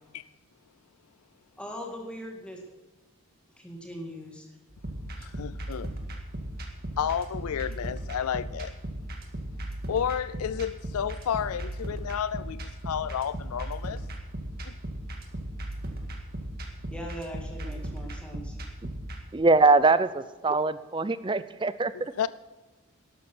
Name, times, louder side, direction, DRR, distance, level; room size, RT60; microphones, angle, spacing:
voice 1, 1.6-2.6 3.5-4.5 16.9-18.6, equal, 5° left, 2.0 m, -40 dB
sound 1, 4.7-19.2, right 1 dB, 45° right, 2.0 m, -37 dB
voice 2, 5.2-5.9 7.0-8.7 9.9-14.0 14.6-14.7 22.2-22.3, left 8 dB, 85° left, 0.4 m, -31 dB
voice 3, 19.3-22.1, right 3 dB, 20° right, 0.4 m, -23 dB
12.5 x 12.0 x 6.1 m
head